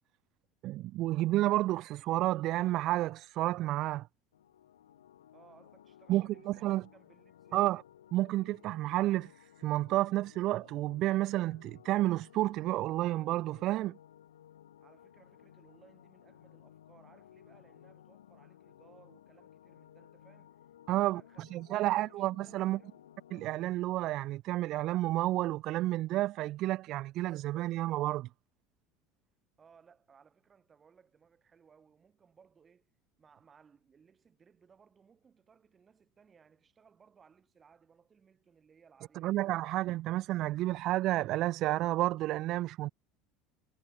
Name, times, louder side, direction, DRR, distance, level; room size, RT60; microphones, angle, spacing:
voice 1, 0.6-4.1 6.1-6.8 7.5-7.8 8.1-9.3 9.6-14.0 20.9-22.8 23.3-28.3 39.2-42.9, right 16 dB, 50° right, 0.3 m, -31 dB
sound 1, 4.3-23.7, left 11 dB, 75° left, 2.1 m, -58 dB
voice 2, 5.3-7.8 14.8-20.6 20.9-23.1 29.6-32.9 33.2-39.4, right 6 dB, 30° right, 4.9 m, -63 dB
figure-of-eight pair, 70°, 0 cm